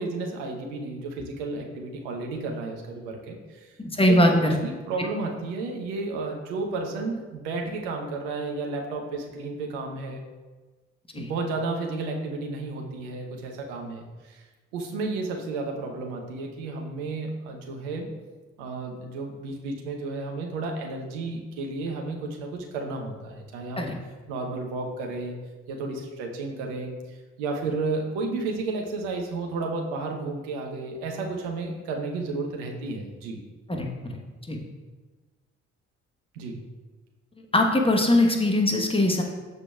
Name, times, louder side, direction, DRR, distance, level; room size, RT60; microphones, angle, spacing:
voice 1, 0.0-10.2 11.1-14.4 14.7-18.1 18.6-23.9 24.3-25.3 25.7-33.4 36.3-36.6, right 3 dB, 65° right, 1 dB, 1.0 m, -32 dB
voice 2, 3.8-4.6 11.1-11.3 23.8-23.9 33.7-34.2 34.5-34.6 37.5-39.2, left 1 dB, 15° left, 2 dB, 1.2 m, -21 dB
13.0 x 5.0 x 2.4 m, 1.3 s
figure-of-eight pair, 40°, 36 cm